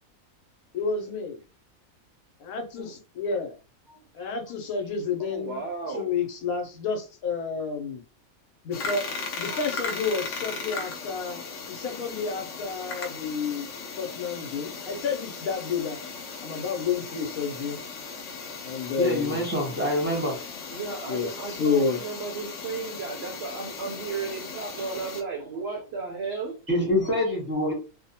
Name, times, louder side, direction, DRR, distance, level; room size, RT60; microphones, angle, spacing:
voice 1, 0.7-1.4 2.4-3.6 4.1-5.6 5.9-8.0 8.6-9.0 9.4-13.7 14.0-16.0 16.4-17.8 18.6-19.4 21.1-22.0, left 5 dB, 85° left, 1.1 m, -30 dB
voice 2, 3.9-4.3 5.2-6.1 9.1-9.2 9.5-9.6 19.4-19.5 20.2-27.4, right 4 dB, 60° right, 0.7 m, -35 dB
sound 1, 8.7-25.2, left 4 dB, 65° left, 0.9 m, -37 dB
voice 3, 19.0-20.4 26.7-27.7, left 1 dB, 10° right, 0.6 m, -25 dB
2.6 x 2.1 x 2.7 m
omnidirectional pair, 1.5 m